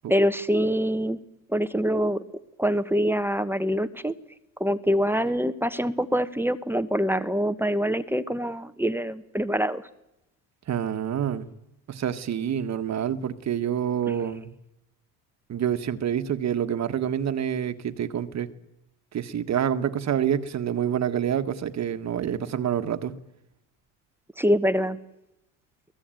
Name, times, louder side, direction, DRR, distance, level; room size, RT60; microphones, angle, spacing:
voice 1, 0.1-1.2 1.5-2.2 2.6-4.1 4.6-9.8 14.1-14.2 24.4-25.0, equal, 5° right, 1.0 m, -25 dB
voice 2, 10.7-11.5 11.9-14.5 15.5-18.5 19.1-23.2, right 9 dB, 45° right, 1.6 m, -27 dB
23.5 x 18.0 x 9.1 m
supercardioid pair, 100°, 38 cm